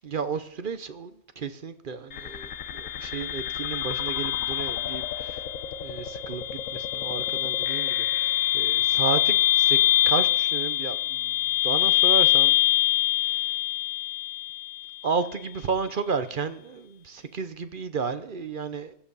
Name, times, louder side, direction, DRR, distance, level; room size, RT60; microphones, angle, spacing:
voice 1, 0.0-5.5 5.8-9.8 10.0-12.6 13.2-13.4 15.0-18.9, right 5 dB, 50° right, 0.9 m, -32 dB
sound 1, 2.1-15.1, left 14 dB, 90° left, 1.3 m, -25 dB
14.5 x 11.0 x 5.4 m
omnidirectional pair, 1.3 m